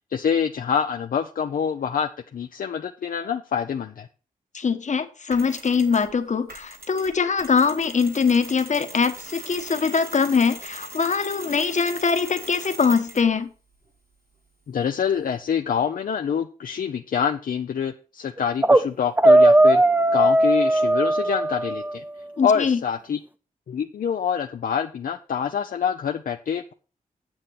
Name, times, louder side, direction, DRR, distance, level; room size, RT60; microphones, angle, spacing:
voice 1, 0.1-4.1 14.7-19.8 20.1-22.0 22.4-23.2 23.7-26.7, left 7 dB, 70° left, 5 dB, 0.6 m, -26 dB
voice 2, 4.5-13.5 22.4-22.8, left 5 dB, 55° left, 8 dB, 1.2 m, -22 dB
Mechanisms, 5.3-6.1 6.5-13.4, right 2 dB, 75° right, 3.6 m, -40 dB
sound 1, 18.4-18.8 19.2-22.0, right 1 dB, 10° right, 0.5 m, -17 dB
8.9 x 7.5 x 4.1 m, 0.35 s
cardioid pair, 60°, 15 cm